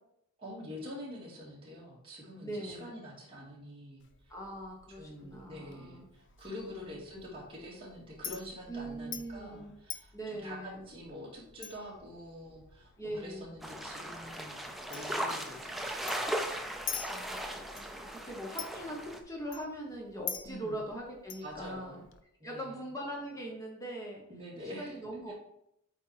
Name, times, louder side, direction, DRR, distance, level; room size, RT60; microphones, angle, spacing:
voice 1, 0.4-4.0 5.0-16.3 20.4-20.8 21.4-22.0 22.4-22.8 24.3-24.9 25.3-25.4, equal, 25° right, -5 dB, 2.3 m, -46 dB
voice 2, 2.4-2.9 4.3-6.1 6.7-7.0 8.7-9.7 10.1-10.9 13.0-13.5 17.1-22.0 22.4-24.2 24.6-25.3, right 1 dB, 15° left, -2 dB, 1.2 m, -41 dB
Chink clink, 4.0-22.2, left 8 dB, 55° left, 0.6 m, -47 dB
sound 1, 13.6-19.2, right 1 dB, ahead, 0.4 m, -37 dB
8.3 x 4.3 x 3.4 m, 0.78 s
head